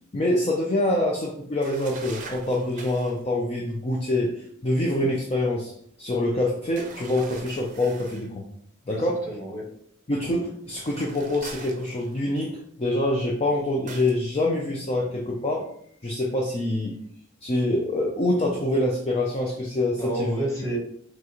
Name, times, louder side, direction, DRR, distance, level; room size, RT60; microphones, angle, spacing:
voice 1, 0.1-5.7 6.0-8.4 8.9-9.3 10.1-15.7 16.0-17.0 17.4-20.4, left 1 dB, 30° left, 0 dB, 0.5 m, -25 dB
sound 1, 1.6-3.2 6.8-8.3 10.7-12.4 13.9-14.2, right 4 dB, 40° right, 0.6 m, -43 dB
voice 2, 8.9-9.7 19.9-20.8, right 2 dB, 15° left, -3 dB, 1.4 m, -31 dB
6.0 x 2.4 x 3.0 m, 0.66 s
head